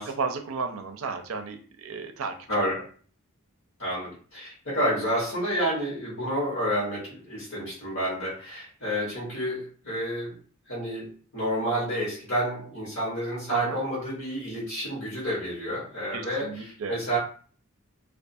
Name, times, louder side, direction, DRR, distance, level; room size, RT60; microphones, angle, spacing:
voice 1, 0.2-2.6 13.5-13.8 16.1-17.0, right 4 dB, 70° right, 6 dB, 0.5 m, -34 dB
voice 2, 2.5-2.9 3.8-10.4 10.7-17.2, equal, 65° left, -7 dB, 1.1 m, -29 dB
2.3 x 2.3 x 2.6 m, 0.43 s
head